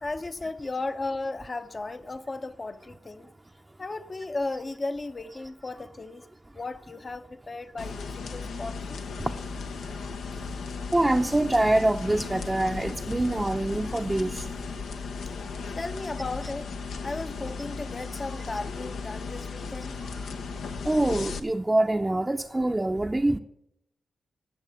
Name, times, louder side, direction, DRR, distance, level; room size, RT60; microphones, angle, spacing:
voice 1, 0.0-3.3 3.8-6.3 6.5-9.0 15.7-20.0, left 2 dB, 35° left, 0.8 m, -35 dB
sound 1, 7.8-21.4, left 4 dB, 80° left, 1.0 m, -36 dB
voice 2, 10.9-14.4 20.9-23.4, right 1 dB, 20° right, 0.7 m, -25 dB
16.5 x 6.5 x 8.0 m
cardioid pair, 50°, 0 cm